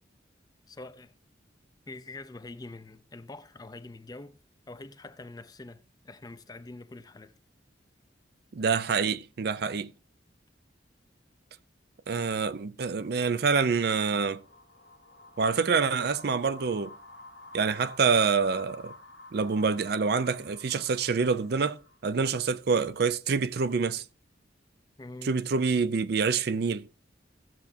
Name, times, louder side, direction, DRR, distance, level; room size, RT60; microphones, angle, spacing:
voice 1, 0.7-1.1 1.9-7.3 25.0-25.4, left 2 dB, 20° left, 0.5 m, -45 dB
voice 2, 8.5-9.9 12.1-14.4 15.4-16.9 17.5-18.9 19.3-24.0 25.2-26.9, right 5 dB, 55° right, 0.4 m, -26 dB
sound 1, 12.8-22.3, left 2 dB, 90° left, 1.2 m, -51 dB
15.0 x 7.1 x 2.6 m
head